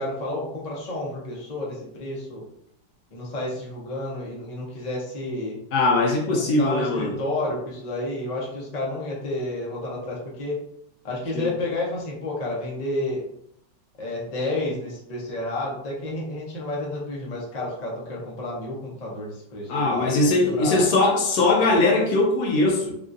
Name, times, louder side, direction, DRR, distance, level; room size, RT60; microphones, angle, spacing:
voice 1, 0.0-2.4 3.1-5.6 6.3-10.5 11.0-13.2 14.0-20.9, left 1 dB, 45° left, -3 dB, 0.5 m, -31 dB
voice 2, 5.7-7.1 11.3-11.5 19.7-22.9, left 2 dB, 70° left, 0 dB, 1.2 m, -20 dB
3.5 x 2.4 x 2.6 m, 0.72 s
omnidirectional pair, 1.8 m